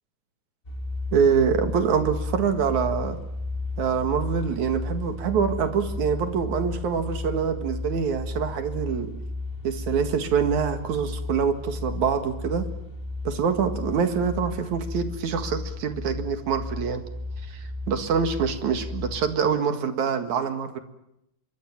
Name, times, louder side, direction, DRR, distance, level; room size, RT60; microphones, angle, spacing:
sound 1, 0.6-19.3, left 2 dB, 15° left, 3.9 m, -34 dB
voice 1, 1.1-3.2 3.8-9.1 9.6-12.7 13.2-17.0 17.5-20.8, right 6 dB, 75° right, 7 dB, 3.2 m, -25 dB
25.5 x 23.0 x 7.4 m, 0.83 s
omnidirectional pair, 3.4 m